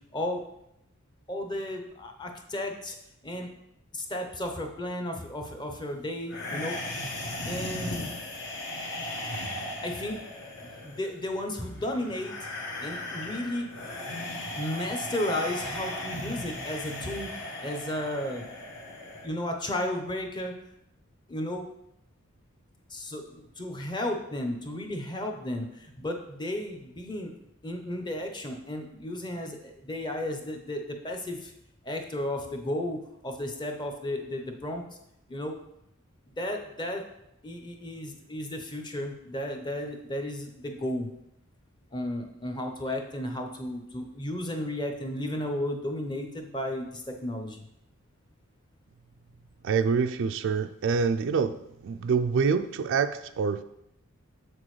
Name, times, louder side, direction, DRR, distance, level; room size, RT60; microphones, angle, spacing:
voice 1, 1.3-3.0 3.2-3.5 3.9-6.8 7.4-8.1 9.8-10.2 10.8-12.3 12.8-13.7 14.6-18.5 19.2-20.5 21.3-21.7 22.9-27.3 27.6-31.5 31.8-34.8 35.3-35.6 36.3-37.0 37.4-41.1 41.9-47.6, left 1 dB, 20° left, 3 dB, 0.7 m, -33 dB
sound 1, 6.3-19.3, left 1 dB, 65° left, 1.2 m, -37 dB
voice 2, 49.6-51.6 51.8-53.6, right 5 dB, 60° right, 10 dB, 0.3 m, -26 dB
6.9 x 6.2 x 3.2 m, 0.82 s
head